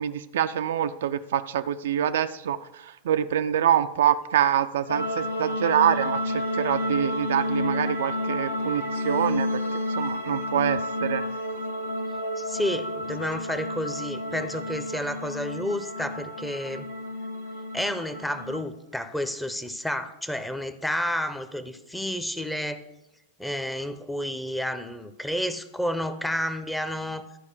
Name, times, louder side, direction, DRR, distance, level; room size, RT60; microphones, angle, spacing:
voice 1, 0.0-9.6 9.9-11.2, right 10 dB, 60° right, 9 dB, 0.4 m, -25 dB
sound 1, 4.9-18.6, left 1 dB, 90° left, 1.5 m, -30 dB
voice 2, 12.4-16.9 17.7-22.8 23.4-27.2, left 1 dB, 5° left, 10 dB, 0.7 m, -30 dB
12.5 x 4.9 x 6.5 m, 0.93 s
figure-of-eight pair, 90°, 0 cm